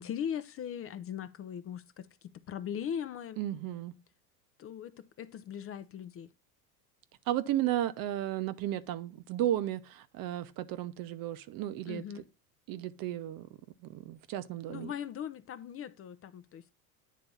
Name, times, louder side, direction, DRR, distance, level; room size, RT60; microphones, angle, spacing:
voice 1, 0.0-3.4 4.6-6.3 11.9-12.2 14.7-16.7, left 9 dB, 30° left, 0.5 m, -39 dB
voice 2, 3.4-3.9 7.3-12.0 12.7-13.5 13.8-14.9, right 13 dB, 50° right, 0.8 m, -34 dB
9.3 x 3.4 x 5.2 m
supercardioid pair, 100°, 45 cm